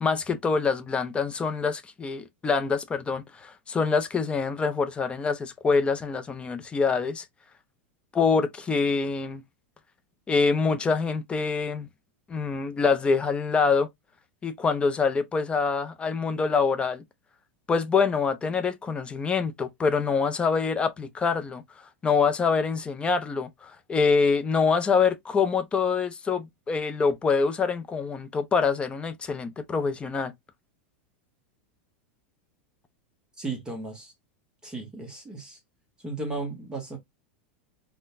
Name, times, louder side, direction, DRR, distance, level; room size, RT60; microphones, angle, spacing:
voice 1, 0.0-7.3 8.1-9.4 10.3-11.9 12.3-13.9 14.4-17.0 17.7-21.6 22.0-30.3, left 5 dB, 15° left, 0.5 m, -25 dB
voice 2, 33.4-34.1 34.6-35.6 36.0-37.0, right 3 dB, 10° right, 0.9 m, -35 dB
3.8 x 2.2 x 2.5 m
supercardioid pair, 135°, 7 cm